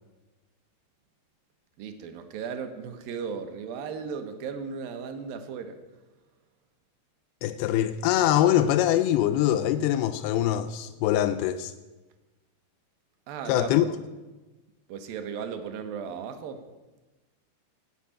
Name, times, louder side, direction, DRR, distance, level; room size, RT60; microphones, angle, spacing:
voice 1, 1.8-5.8 13.3-14.0 14.9-16.7, right 6 dB, 70° right, 2.4 m, -36 dB
voice 2, 7.4-11.7 13.5-13.9, left 12 dB, 85° left, 2.2 m, -23 dB
17.0 x 5.8 x 8.5 m
omnidirectional pair, 5.0 m